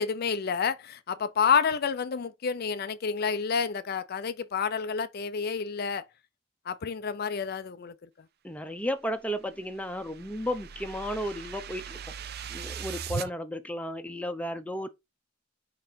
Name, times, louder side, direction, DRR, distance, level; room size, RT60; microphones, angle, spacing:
voice 1, 0.0-6.0 6.7-7.9, left 6 dB, 55° left, 0.5 m, -29 dB
voice 2, 8.4-12.0 12.5-14.9, equal, 5° left, 0.8 m, -33 dB
sound 1, 9.3-13.3, right 6 dB, 55° right, 0.5 m, -39 dB
4.8 x 4.4 x 5.1 m
head